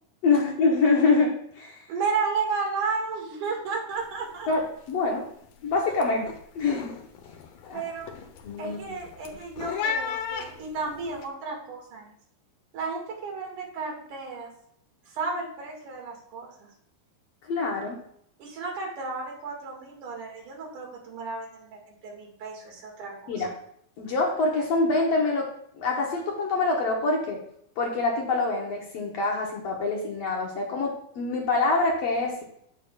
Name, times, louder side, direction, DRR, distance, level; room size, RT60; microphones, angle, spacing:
voice 1, 0.2-1.9 4.5-4.6 4.9-5.3 5.6-6.9 7.7-7.8 8.4-9.0 17.4-18.0 23.3-23.5 24.0-25.5 25.8-27.4 27.8-32.4, left 3 dB, 60° left, 0 dB, 1.9 m, -25 dB
voice 2, 1.9-4.5 7.7-8.1 8.6-12.1 12.7-14.5 15.1-16.5 18.4-23.5, right 4 dB, 70° right, -1 dB, 3.3 m, -33 dB
sound 1, 3.9-4.2 4.5-4.9 5.3-11.2, left 7 dB, 90° left, 2.6 m, -36 dB
8.6 x 8.5 x 2.4 m, 0.69 s
omnidirectional pair, 3.8 m